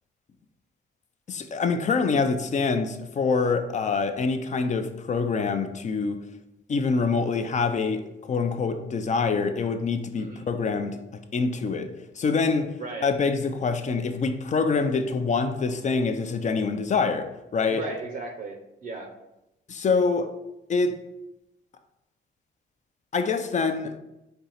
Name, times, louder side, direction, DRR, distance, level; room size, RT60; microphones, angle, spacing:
voice 1, 1.3-6.2 6.7-11.9 12.2-12.7 13.0-17.8 19.7-20.3 20.7-21.0 23.1-23.9, left 4 dB, 35° left, 0.5 m, -25 dB
voice 2, 10.2-10.5 12.8-13.1 17.7-19.1, right 3 dB, 50° right, 0.6 m, -36 dB
4.4 x 2.8 x 4.1 m
cardioid pair, 90°, 20 cm